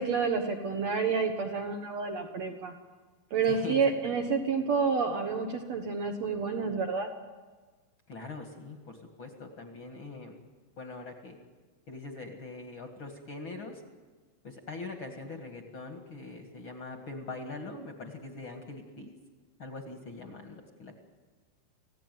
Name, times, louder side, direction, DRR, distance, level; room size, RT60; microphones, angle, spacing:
voice 1, 0.0-2.7 3.3-7.1, right 5 dB, 70° right, 4 dB, 1.6 m, -29 dB
voice 2, 3.4-4.2 8.1-10.4 10.8-11.4 11.9-13.8 14.4-19.1 19.6-21.0, left 3 dB, 45° left, 4 dB, 1.7 m, -42 dB
27.0 x 16.5 x 9.3 m, 1.4 s
omnidirectional pair, 5.1 m